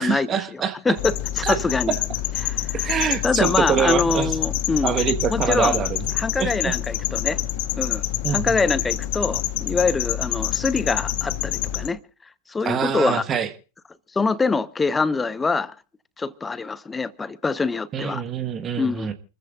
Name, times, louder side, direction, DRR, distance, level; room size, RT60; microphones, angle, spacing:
voice 1, 0.0-0.8 1.4-1.6 2.7-4.3 4.8-6.1 6.4-6.7 8.2-8.6 12.6-13.5 17.9-19.1, right 7 dB, 25° right, 1.4 m, -24 dB
voice 2, 0.8-1.9 2.4-2.9 3.2-5.0 5.3-5.8 6.2-7.4 7.8-8.0 8.3-12.0 12.5-13.2 14.1-15.7 16.2-18.2 18.8-19.1, left 4 dB, 15° left, 0.9 m, -24 dB
sound 1, 1.0-11.9, left 14 dB, 50° left, 1.2 m, -27 dB
29.0 x 14.0 x 2.4 m
figure-of-eight pair, 90°, 0 cm